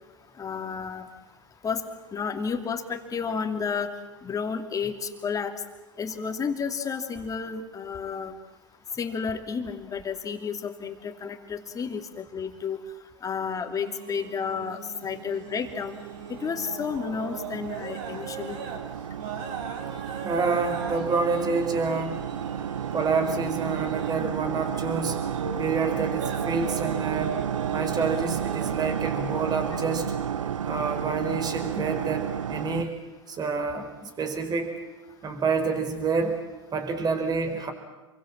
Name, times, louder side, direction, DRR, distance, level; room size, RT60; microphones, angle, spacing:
voice 1, 0.4-1.1 1.6-1.8 2.1-3.9 4.2-5.5 6.0-8.3 9.0-12.8 13.2-15.9 16.4-18.6, left 6 dB, 20° left, 6 dB, 2.9 m, -31 dB
sound 1, 13.6-31.2, right 6 dB, 50° right, 5.9 m, -40 dB
sound 2, 15.3-32.8, right 8 dB, 75° right, 1.1 m, -32 dB
voice 2, 20.2-22.2 22.9-25.2 25.6-27.4 27.7-30.1 30.6-32.9 33.3-34.7 35.2-36.4 36.7-37.7, right 4 dB, 25° right, 7 dB, 5.0 m, -28 dB
28.5 x 23.0 x 7.6 m, 1.1 s
hypercardioid pair, 95°, 16 cm